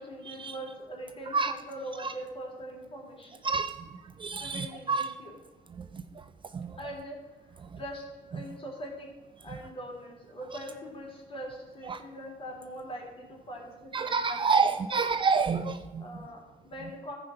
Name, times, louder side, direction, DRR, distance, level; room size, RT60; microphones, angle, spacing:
voice 1, 0.0-3.4 4.4-5.4 6.8-7.2 7.5-8.0 8.3-9.1 9.4-14.5 14.9-15.0 16.0-17.1, equal, 35° left, -1 dB, 3.5 m, -42 dB
voice 2, 3.4-3.9 4.2-5.1 5.8-6.0 6.5-6.7 11.9-12.0 13.9-16.1, right 5 dB, 30° right, 9 dB, 0.5 m, -28 dB
14.5 x 5.2 x 5.8 m, 1.2 s
cardioid pair, 110°, 17 cm